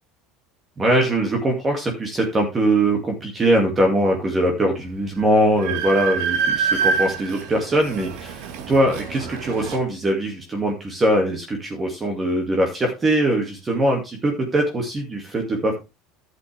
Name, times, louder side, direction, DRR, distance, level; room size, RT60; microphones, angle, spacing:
voice 1, 0.8-15.8, right 1 dB, 20° right, 1 dB, 2.4 m, -21 dB
Train, 4.8-4.9 5.2-9.8, right 6 dB, 75° right, 1.8 m, -26 dB
11.0 x 8.0 x 3.5 m, 0.26 s
supercardioid pair, 120°, 0 cm